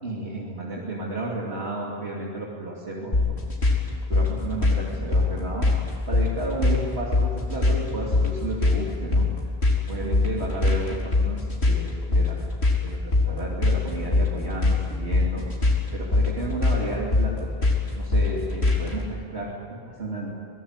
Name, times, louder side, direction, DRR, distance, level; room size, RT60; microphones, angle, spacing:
voice 1, 0.0-3.5 4.1-9.3 9.9-12.4 12.8-15.5 15.9-17.5 18.0-20.3, right 2 dB, 80° right, -4 dB, 3.1 m, -32 dB
sound 1, 3.1-19.0, left 3 dB, 80° left, 4.8 m, -23 dB
25.0 x 19.5 x 9.7 m, 2.4 s
omnidirectional pair, 1.1 m